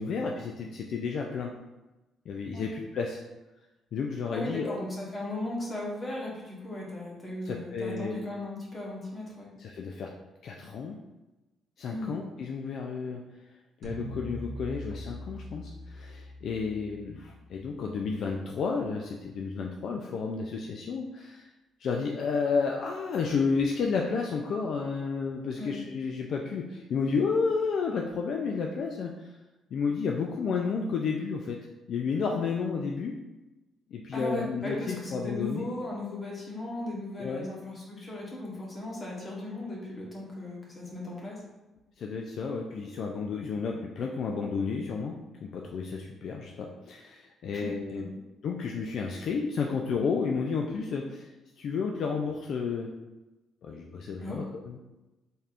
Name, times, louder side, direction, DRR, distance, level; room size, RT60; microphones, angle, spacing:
voice 1, 0.0-1.5 2.3-3.2 3.9-4.8 7.5-8.2 9.6-10.1 10.4-11.0 11.8-13.2 13.8-21.5 21.8-29.3 29.7-31.6 31.9-33.1 33.9-35.6 37.2-37.5 42.0-45.2 45.4-48.1 48.4-51.3 51.6-52.9 53.6-54.8, left 5 dB, 60° left, 1 dB, 0.3 m, -31 dB
voice 2, 4.3-9.5 11.9-12.1 25.5-25.7 34.1-41.4 47.5-48.0 54.2-54.4, left 2 dB, 30° left, -3 dB, 1.1 m, -37 dB
sound 1, 13.8-18.2, equal, 50° right, 0.8 m, -42 dB
4.2 x 3.4 x 2.5 m, 1.1 s
cardioid pair, 120°, 0 cm